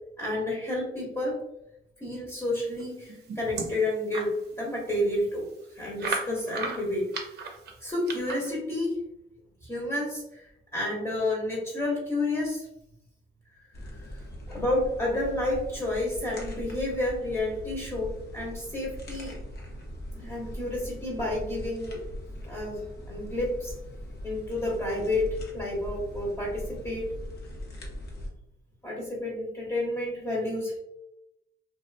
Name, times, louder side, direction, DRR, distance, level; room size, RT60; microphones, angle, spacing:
voice 1, 0.2-1.4 2.0-4.3 4.6-5.4 5.7-7.1 7.8-8.9 9.6-12.7 13.8-19.3 20.1-22.0 22.4-23.7 24.2-27.1 28.8-30.8, left 1 dB, 15° left, -5 dB, 0.9 m, -30 dB
antacid bottle rattle, 2.8-4.3 4.8-4.9 5.2-5.3 6.0-8.5, right 4 dB, 55° right, 0.6 m, -35 dB
sound 1, 13.7-28.3, left 1 dB, 55° left, 0.8 m, -40 dB
2.5 x 2.2 x 2.5 m, 0.85 s
cardioid pair, 90°, 20 cm